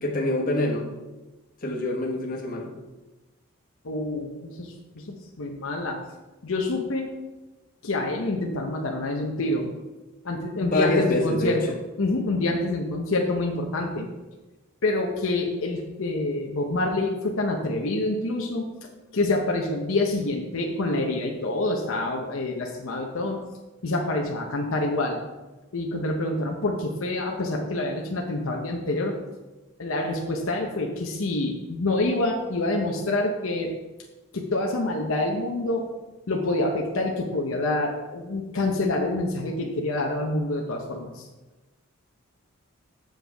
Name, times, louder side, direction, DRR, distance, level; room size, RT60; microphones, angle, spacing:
voice 1, 0.0-0.9 1.6-2.7 10.6-11.6, left 1 dB, 40° left, -2 dB, 1.3 m, -25 dB
voice 2, 3.8-6.0 6.4-7.1 7.8-9.7 10.2-14.1 14.8-23.4 23.8-25.2 25.7-29.1 29.8-33.7 34.3-35.9 36.3-41.3, left 2 dB, 70° left, 0 dB, 0.8 m, -27 dB
7.6 x 7.3 x 3.4 m, 1.1 s
head